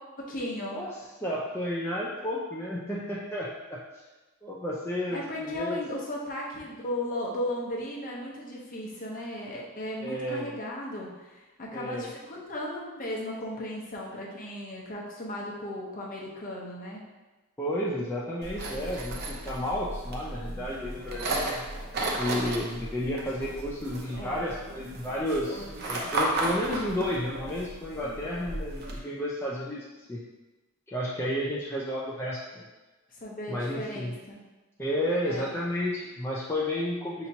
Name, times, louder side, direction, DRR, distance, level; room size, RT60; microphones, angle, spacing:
voice 1, 0.2-0.8 5.1-17.0 24.2-24.5 33.2-34.4 35.2-35.5 37.2-37.3, left 1 dB, 40° left, -3 dB, 0.8 m, -36 dB
voice 2, 1.2-3.8 4.4-5.8 10.0-10.5 11.7-12.1 17.6-21.6 22.1-29.8 30.1-30.2 30.9-32.7 33.5-34.2 34.8-37.3, left 1 dB, 10° left, -6 dB, 0.4 m, -32 dB
sound 1, 18.4-29.0, right 2 dB, 50° right, 0.7 m, -34 dB
5.4 x 2.9 x 2.8 m, 1.1 s
head